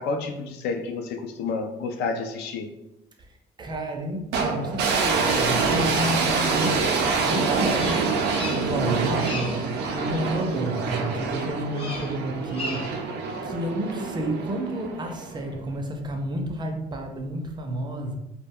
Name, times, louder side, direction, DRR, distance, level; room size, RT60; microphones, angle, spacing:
voice 1, 0.0-2.7, left 4 dB, 75° left, 4 dB, 0.4 m, -30 dB
voice 2, 3.6-8.0 8.5-12.9 13.4-18.2, right 1 dB, 25° right, 3 dB, 0.5 m, -30 dB
sound 1, 4.3-15.5, right 4 dB, 85° right, 0.5 m, -26 dB
Bird vocalization bird call bird song, 7.7-8.9 9.1-9.7 11.7-12.2 12.5-13.0, left 2 dB, 30° left, 0.7 m, -36 dB
2.3 x 2.1 x 3.5 m, 0.90 s
cardioid pair, 110°, 17 cm